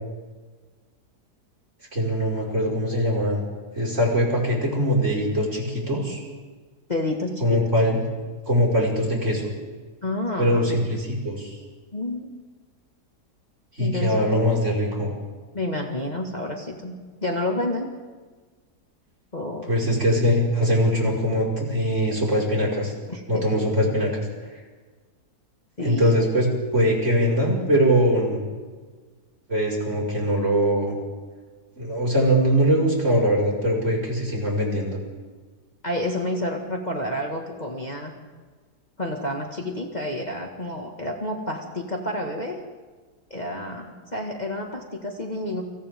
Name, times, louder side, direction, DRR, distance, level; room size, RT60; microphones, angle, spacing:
voice 1, 1.9-3.4 3.8-6.2 7.4-8.0 8.4-9.4 10.4-11.6 13.8-15.1 19.7-22.9 23.3-24.1 25.8-28.4 29.5-31.0 31.8-35.0, equal, 45° right, -2 dB, 5.9 m, -22 dB
voice 2, 6.9-7.6 10.0-10.8 11.9-12.3 13.8-14.3 15.5-16.9 17.2-17.9 19.3-19.7 23.1-23.4 25.8-26.1 35.8-38.1 39.0-42.6 43.3-43.9 44.1-45.6, left 1 dB, 25° left, 0 dB, 2.1 m, -29 dB
29.5 x 26.5 x 3.8 m, 1.4 s
omnidirectional pair, 1.7 m